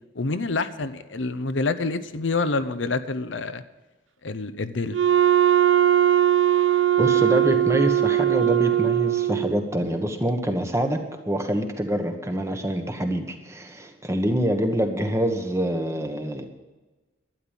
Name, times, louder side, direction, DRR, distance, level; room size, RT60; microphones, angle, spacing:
voice 1, 0.1-3.6 4.2-5.0, left 3 dB, 80° left, 11 dB, 0.8 m, -27 dB
Wind instrument woodwind instrument, 4.9-9.7, right 10 dB, 85° right, 0.6 m, -20 dB
voice 2, 7.0-16.4, equal, 15° right, 5 dB, 1.3 m, -25 dB
12.0 x 10.0 x 7.4 m, 1.2 s
head